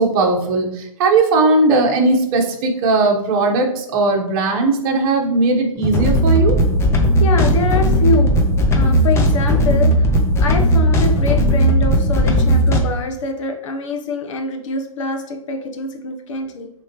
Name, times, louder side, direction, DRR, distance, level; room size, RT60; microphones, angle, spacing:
voice 1, 0.0-6.6, right 3 dB, 40° right, 1 dB, 1.3 m, -17 dB
sound 1, 5.8-12.8, equal, 15° left, 0.8 m, -15 dB
voice 2, 7.2-8.4 8.7-10.1 10.4-16.7, left 4 dB, 60° left, 3 dB, 1.2 m, -24 dB
8.9 x 3.5 x 3.1 m, 0.79 s
hypercardioid pair, 125°, 18 cm